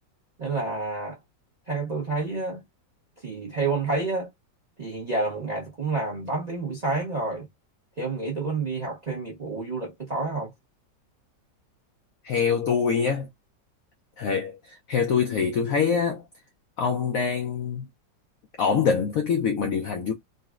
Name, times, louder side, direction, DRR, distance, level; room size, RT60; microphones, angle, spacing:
voice 1, 0.4-1.2 1.7-2.6 3.2-4.3 4.8-7.5 8.0-10.5, right 3 dB, 50° right, 0.4 m, -29 dB
voice 2, 12.2-13.3 14.2-16.2 16.8-17.9 18.6-20.1, left 6 dB, 85° left, 0.7 m, -24 dB
3.9 x 2.1 x 2.4 m
omnidirectional pair, 2.0 m